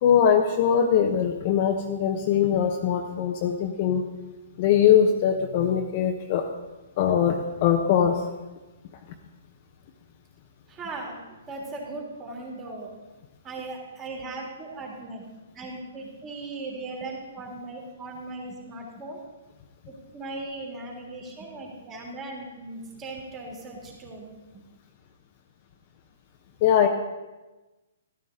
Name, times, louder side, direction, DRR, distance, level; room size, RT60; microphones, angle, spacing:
voice 1, 0.0-4.0 4.6-6.5 7.0-8.2 26.6-26.9, left 8 dB, 40° left, 2 dB, 1.0 m, -21 dB
voice 2, 10.7-12.9 13.4-15.2 15.5-19.2 19.9-24.3, right 2 dB, 20° right, -1 dB, 3.1 m, -38 dB
13.0 x 12.5 x 3.8 m, 1.1 s
hypercardioid pair, 130°, 0 cm